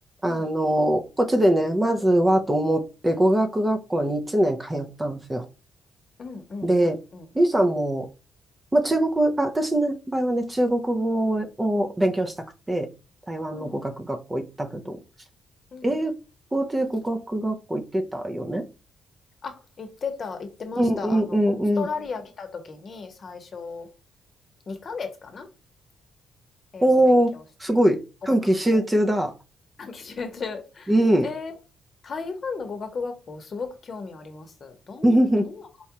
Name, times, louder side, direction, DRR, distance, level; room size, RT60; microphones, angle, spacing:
voice 1, 0.2-5.4 6.6-7.0 7.3-8.1 8.7-12.9 13.3-15.0 15.8-16.2 16.5-18.7 20.8-21.9 26.8-27.3 27.6-28.0 28.3-29.3 30.9-31.3 35.0-35.5, right 1 dB, 15° right, 0.6 m, -22 dB
voice 2, 6.2-7.2 13.5-13.9 15.7-16.0 19.4-23.9 24.7-25.5 26.7-27.4 28.7-28.8 29.8-30.9 31.2-31.5 32.0-35.6, left 4 dB, 45° left, 0.9 m, -35 dB
4.2 x 2.3 x 2.9 m
cardioid pair, 90°, 0 cm